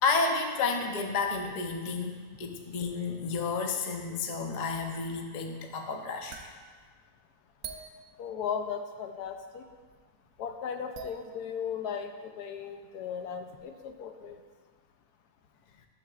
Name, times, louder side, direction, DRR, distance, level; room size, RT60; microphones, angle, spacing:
voice 1, 0.0-6.5, left 4 dB, 65° left, 3 dB, 0.4 m, -31 dB
sound 1, 6.3-8.9 9.1-10.0 10.2-10.4 10.8-11.8 12.6-12.7 13.2-13.3 13.6-14.0, right 6 dB, 60° right, 1.0 m, -48 dB
voice 2, 8.2-9.6 10.4-14.4, left 7 dB, 80° left, 6 dB, 1.1 m, -36 dB
10.5 x 7.2 x 2.4 m, 1.5 s
omnidirectional pair, 1.7 m